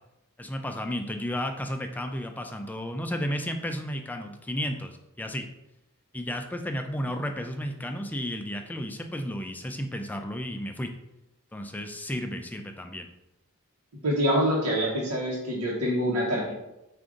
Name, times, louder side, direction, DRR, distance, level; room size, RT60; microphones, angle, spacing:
voice 1, 0.4-5.5 6.1-10.9 11.5-13.1, equal, 10° left, 5 dB, 0.3 m, -33 dB
voice 2, 14.0-16.5, equal, 85° right, -4 dB, 1.0 m, -25 dB
4.8 x 2.5 x 3.7 m, 0.92 s
head